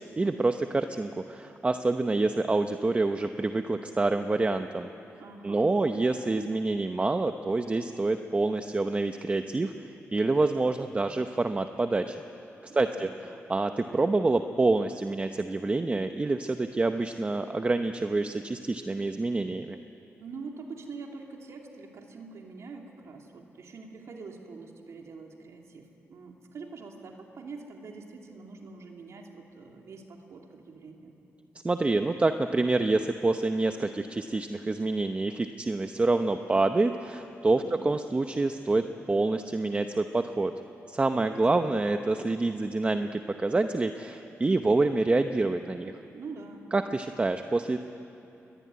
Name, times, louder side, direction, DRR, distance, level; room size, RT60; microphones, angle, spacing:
voice 1, 0.2-4.9 5.4-12.2 12.6-19.8 31.6-40.5 40.9-45.9 46.7-47.8, right 3 dB, 25° right, 7 dB, 0.8 m, -27 dB
voice 2, 5.2-5.7 12.7-13.2 20.2-31.1 37.5-37.8 41.1-41.7 46.1-46.7, right 4 dB, 70° right, 1 dB, 2.8 m, -45 dB
23.0 x 22.0 x 9.5 m, 2.9 s
cardioid pair, 100°, 5 cm